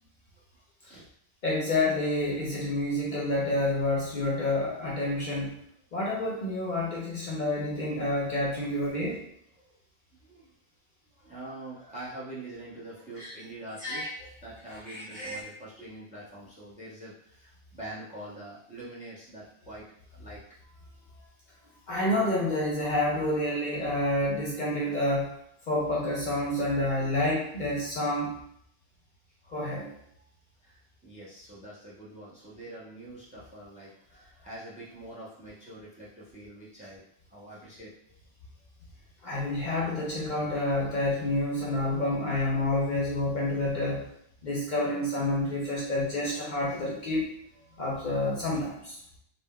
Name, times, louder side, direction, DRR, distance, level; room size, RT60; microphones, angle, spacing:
voice 1, 0.5-1.1 9.6-9.8 10.2-10.5 11.1-14.1 14.4-20.4 30.1-30.2 30.6-37.0 37.3-38.2 47.6-47.8, right 1 dB, 10° right, -7 dB, 0.6 m, -45 dB
voice 2, 1.4-5.5 5.9-9.2 13.2-13.3 13.8-14.1 14.7-15.4 21.9-25.3 25.7-28.4 29.5-29.9 39.2-44.1 44.4-47.3 47.8-49.0, left 1 dB, 55° left, -5 dB, 0.7 m, -29 dB
3.6 x 2.1 x 2.2 m, 0.71 s
omnidirectional pair, 1.0 m